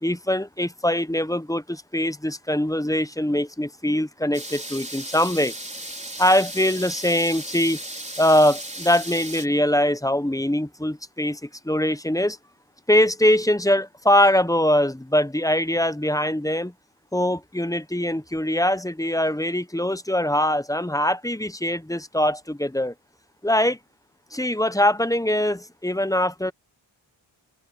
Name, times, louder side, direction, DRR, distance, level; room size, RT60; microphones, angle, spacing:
voice 1, 0.0-5.5 6.2-7.8 8.2-12.4 12.9-16.7 17.1-22.9 23.4-23.8 24.3-26.5, left 1 dB, 5° left, 1.0 m, -22 dB
sound 1, 4.3-9.5, right 1 dB, 15° right, 4.6 m, -36 dB
open air
cardioid pair, 50°, 48 cm